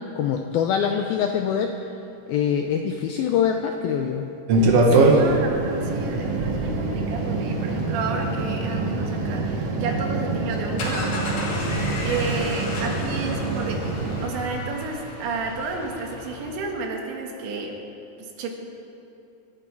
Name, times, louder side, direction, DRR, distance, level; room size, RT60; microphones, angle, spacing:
voice 1, 0.2-1.7 2.3-4.3 4.7-5.2, left 8 dB, 85° left, 5 dB, 2.1 m, -24 dB
sound 1, 4.5-14.3, right 2 dB, 70° right, 1.4 m, -24 dB
voice 2, 4.9-13.8 14.2-17.7 18.2-18.5, right 3 dB, 85° right, 1 dB, 4.0 m, -31 dB
sound 2, 10.6-16.9, left 2 dB, 55° left, 4.1 m, -34 dB
23.5 x 12.0 x 4.7 m, 2.8 s
omnidirectional pair, 5.0 m